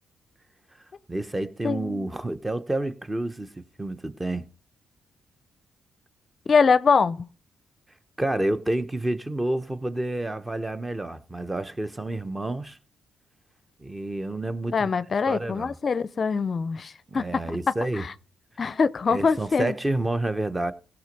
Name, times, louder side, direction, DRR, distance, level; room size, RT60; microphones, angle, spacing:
voice 1, 1.1-4.4 8.2-12.8 13.8-14.9 15.3-15.7 17.1-18.0 19.1-20.7, right 2 dB, 15° right, 0.9 m, -29 dB
voice 2, 1.6-2.1 6.5-7.3 14.7-17.3 18.0-18.1 18.6-19.7, left 5 dB, 45° left, 0.5 m, -23 dB
16.5 x 6.0 x 5.3 m
supercardioid pair, 65°, 0 cm